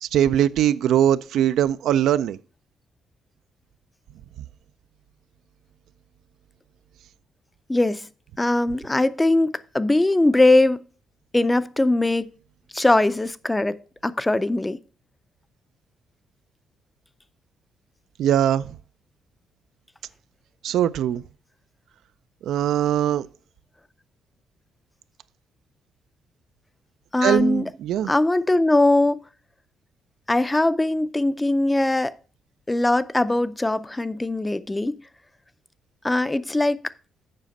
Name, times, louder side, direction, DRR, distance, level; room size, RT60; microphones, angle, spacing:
voice 1, 0.0-2.4 18.2-18.7 20.6-21.2 22.4-23.3 27.2-28.1, right 10 dB, 80° right, 0.3 m, -21 dB
voice 2, 7.7-8.1 8.4-10.8 11.3-12.3 12.7-13.8 14.0-14.8 27.1-27.6 28.1-29.2 30.3-32.1 32.7-35.0 36.0-36.8, left 2 dB, 15° left, 0.4 m, -20 dB
7.5 x 5.0 x 5.2 m
cardioid pair, 90°, 0 cm